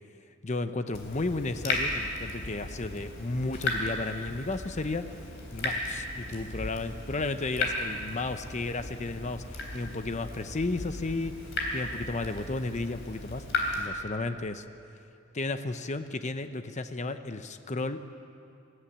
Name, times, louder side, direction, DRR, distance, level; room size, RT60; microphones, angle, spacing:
voice 1, 0.4-5.1 5.5-11.3 11.7-13.4 13.8-14.6 15.3-18.1, left 2 dB, 35° left, 10 dB, 0.8 m, -33 dB
Water tap faucet / Drip, 0.9-13.9, left 2 dB, 60° left, 3.7 m, -35 dB
21.0 x 15.0 x 8.7 m, 2.6 s
head